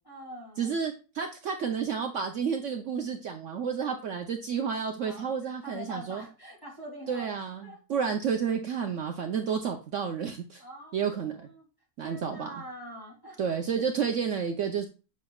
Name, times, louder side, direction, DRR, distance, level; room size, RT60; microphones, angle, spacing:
voice 1, 0.0-0.7 5.0-8.0 10.6-11.6 12.0-13.4, equal, 15° left, -3 dB, 2.8 m, -45 dB
voice 2, 0.6-6.2 7.1-10.6 10.9-11.4 12.0-12.5 13.4-14.9, right 6 dB, 60° right, 4 dB, 1.0 m, -31 dB
7.8 x 6.2 x 2.3 m, 0.32 s
omnidirectional pair, 1.6 m